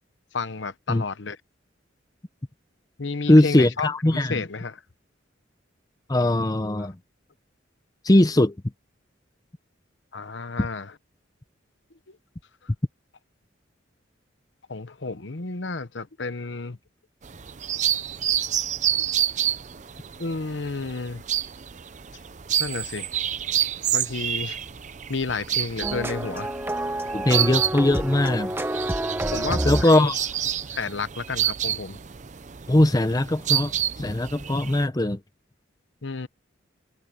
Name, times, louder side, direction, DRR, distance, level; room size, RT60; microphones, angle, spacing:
voice 1, 0.3-1.4 3.0-4.8 6.8-6.9 10.1-10.9 14.7-16.8 19.0-19.1 20.2-21.2 22.6-23.1 23.9-24.6 25.1-26.5 29.3-30.1 30.7-32.0 36.0-36.3, left 4 dB, 65° left, 1.0 m, -31 dB
voice 2, 3.3-4.4 6.1-6.9 8.0-8.6 27.1-28.5 29.6-30.2 32.7-33.7 34.0-35.2, left 1 dB, 20° left, 0.7 m, -20 dB
sound 1, 17.2-34.8, right 10 dB, 40° right, 0.6 m, -29 dB
sound 2, 25.8-30.2, right 1 dB, 10° right, 1.3 m, -28 dB
head